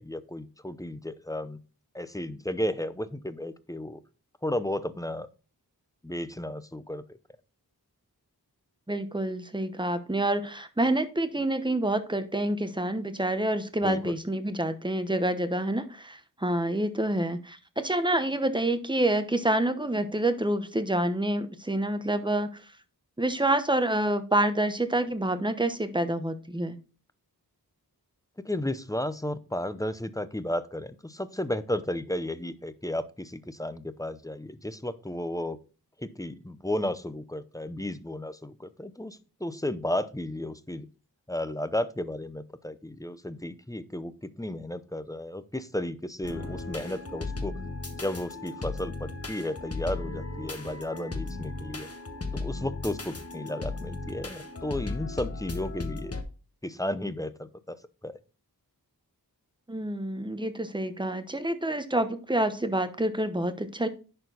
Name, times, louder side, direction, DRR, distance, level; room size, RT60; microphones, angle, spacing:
voice 1, 0.0-1.6 1.9-4.0 4.4-5.3 6.0-7.0 13.8-14.1 28.4-35.6 36.0-40.9 41.3-47.6 48.0-51.9 52.3-56.1 56.6-57.8 58.0-58.2, left 1 dB, 10° left, 0.6 m, -33 dB
voice 2, 8.9-22.6 23.2-26.8 59.7-63.9, right 1 dB, 10° right, 0.9 m, -27 dB
sound 1, 46.2-56.2, left 3 dB, 40° left, 1.2 m, -36 dB
10.5 x 4.4 x 4.0 m
wide cardioid pair, 60°, 39 cm